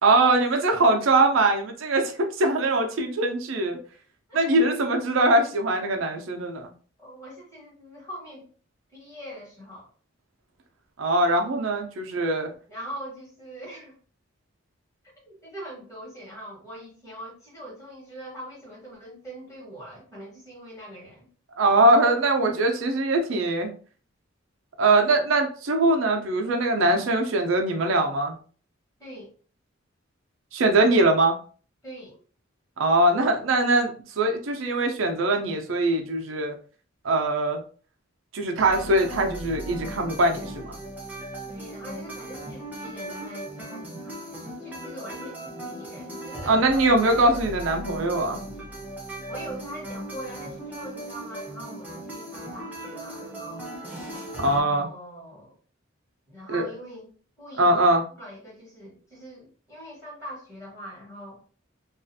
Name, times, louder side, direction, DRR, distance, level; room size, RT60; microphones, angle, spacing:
voice 1, 0.0-3.8 4.3-6.7 11.0-12.5 21.6-23.7 24.8-28.3 30.5-31.4 32.8-33.9 34.2-36.5 37.0-37.6 38.3-40.8 46.5-48.4 54.4-54.9 56.5-56.7 57.6-58.0, right 2 dB, 70° right, 4 dB, 0.5 m, -22 dB
voice 2, 7.0-8.4 8.9-9.9 12.7-14.0 15.3-21.3 29.0-29.3 31.8-32.2 41.5-46.6 49.3-53.7 54.5-55.5 56.3-57.1 57.4-61.4, equal, 15° left, -4 dB, 1.1 m, -42 dB
sound 1, 38.6-54.6, right 1 dB, 10° right, 0.6 m, -38 dB
2.4 x 2.4 x 2.6 m, 0.40 s
head